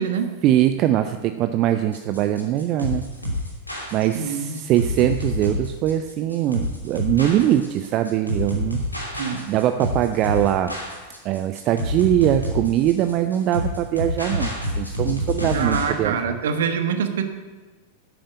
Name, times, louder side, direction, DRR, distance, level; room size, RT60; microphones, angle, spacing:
voice 1, 0.4-3.1 3.9-8.8 9.5-10.8 11.2-16.4, right 12 dB, 35° right, 9 dB, 0.6 m, -22 dB
sound 1, 1.9-15.9, left 1 dB, 85° left, 2.8 m, -28 dB
voice 2, 4.1-4.6 9.1-9.5 15.5-17.2, right 6 dB, 60° right, 7 dB, 1.4 m, -25 dB
11.0 x 8.7 x 8.2 m, 1.3 s
figure-of-eight pair, 90°, 0 cm